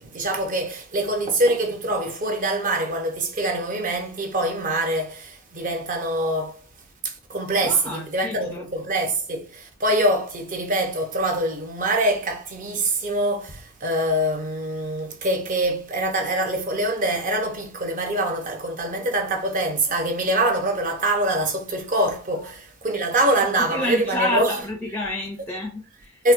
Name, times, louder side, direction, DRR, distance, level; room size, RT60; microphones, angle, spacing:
voice 1, 0.0-6.6 7.0-24.6 26.2-26.3, right 1 dB, 40° right, 0.7 m, -24 dB
voice 2, 7.6-8.6 23.7-26.2, left 1 dB, 10° left, 0.4 m, -29 dB
4.2 x 2.1 x 2.5 m
head